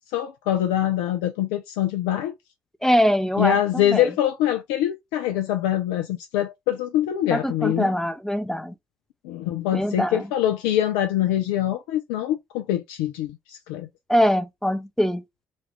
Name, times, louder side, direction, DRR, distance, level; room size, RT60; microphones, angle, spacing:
voice 1, 0.1-2.3 3.4-7.9 9.2-13.9, left 12 dB, 75° left, 0.4 m, -24 dB
voice 2, 2.8-4.1 7.3-8.7 9.7-10.3 14.1-15.2, equal, 5° left, 0.5 m, -23 dB
3.0 x 2.4 x 3.3 m
hypercardioid pair, 45°, 9 cm